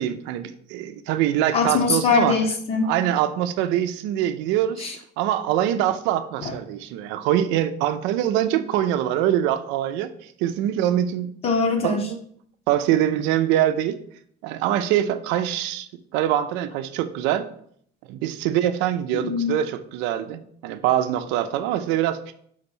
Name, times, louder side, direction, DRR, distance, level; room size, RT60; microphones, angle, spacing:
voice 1, 0.0-2.4 2.8-4.9 5.2-11.3 11.8-12.2 12.7-14.0 14.4-17.5 18.1-22.3, right 11 dB, 75° right, 10 dB, 0.6 m, -24 dB
voice 2, 1.5-2.9 4.8-5.0 6.4-6.5 11.4-12.0 19.1-19.6, left 5 dB, 30° left, 5 dB, 0.9 m, -22 dB
5.1 x 3.9 x 5.4 m, 0.63 s
cardioid pair, 170°, 20 cm